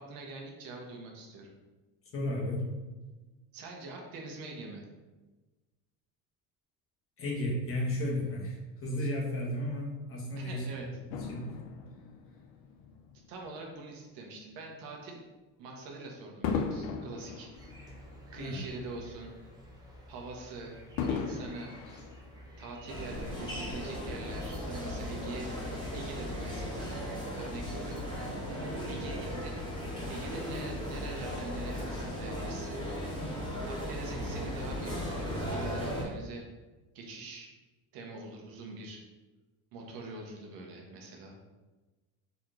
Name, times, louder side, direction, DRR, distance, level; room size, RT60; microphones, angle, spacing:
voice 1, 0.0-1.5 3.5-4.8 10.4-10.9 13.3-15.2 15.6-18.1 18.3-19.3 20.1-20.7 21.1-21.7 22.6-25.5 25.9-26.9 27.4-28.0 28.9-29.6 30.1-32.8 33.7-36.4 36.9-37.5 37.9-39.0 39.7-41.5, right 3 dB, 65° right, 0 dB, 1.0 m, -44 dB
voice 2, 2.1-2.7 7.2-10.8 11.1-11.5 18.4-18.7 29.3-29.4, left 1 dB, 35° left, -2 dB, 1.1 m, -34 dB
Fireworks, 11.1-13.7 14.3-14.6 16.4-18.9 19.3-19.4 21.0-22.9 23.6-23.7, left 5 dB, 65° left, 0.6 m, -37 dB
sound 1, 17.5-34.6, left 2 dB, 10° right, 0.7 m, -51 dB
sound 2, 22.9-36.0, equal, 10° left, 1.2 m, -37 dB
4.1 x 3.0 x 3.7 m, 1.2 s
cardioid pair, 135°, 37 cm